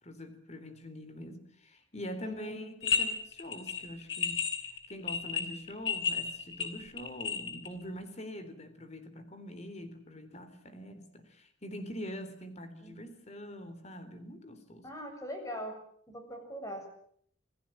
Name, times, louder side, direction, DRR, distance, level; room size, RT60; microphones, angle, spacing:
voice 1, 0.0-4.4 4.9-14.9, equal, 35° left, 11 dB, 3.7 m, -44 dB
voice 2, 2.2-2.5 12.8-12.9 14.8-15.8 16.1-16.9, equal, 15° left, 4 dB, 7.0 m, -41 dB
sound 1, 2.8-3.1 3.3-7.7, left 5 dB, 65° left, 4.7 m, -32 dB
27.5 x 17.5 x 9.0 m, 0.64 s
head